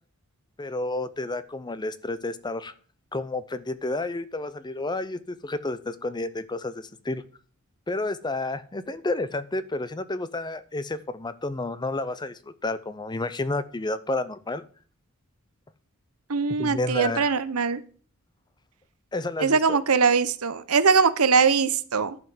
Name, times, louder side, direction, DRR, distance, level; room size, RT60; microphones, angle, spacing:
voice 1, 0.6-2.7 3.1-7.2 7.9-14.6 16.5-17.3 19.1-19.8, left 2 dB, 20° left, 14 dB, 0.6 m, -30 dB
voice 2, 16.3-17.8 19.4-22.2, right 5 dB, 80° right, 14 dB, 0.9 m, -21 dB
11.0 x 5.7 x 7.9 m, 0.43 s
head